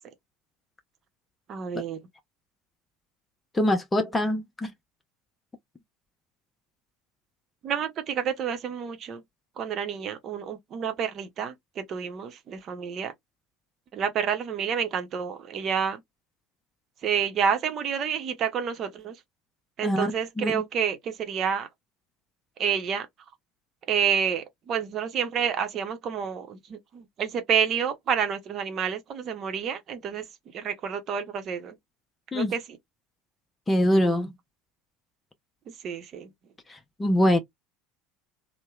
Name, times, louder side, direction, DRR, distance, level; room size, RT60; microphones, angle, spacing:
voice 1, 1.5-2.0 7.6-9.2 9.6-13.1 13.9-16.0 17.0-19.1 19.8-21.7 22.6-23.1 23.9-30.2 30.5-31.8 32.3-32.6 35.8-36.3, right 7 dB, 45° right, 0.8 m, -29 dB
voice 2, 3.5-4.7 19.8-20.1 20.4-20.6 32.3-32.5 33.7-34.3 37.0-37.4, left 1 dB, 15° left, 0.6 m, -23 dB
2.8 x 2.1 x 2.3 m
figure-of-eight pair, 70°, 0 cm